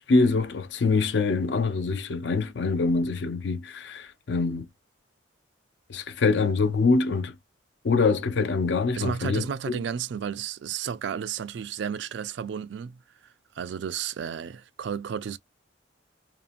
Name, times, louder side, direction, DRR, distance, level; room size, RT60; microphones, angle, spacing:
voice 1, 0.0-4.7 5.9-7.4 7.8-9.5, left 4 dB, 60° left, 0.5 m, -24 dB
voice 2, 8.9-13.0 13.6-15.4, right 7 dB, 65° right, 0.3 m, -32 dB
2.7 x 2.5 x 2.4 m
head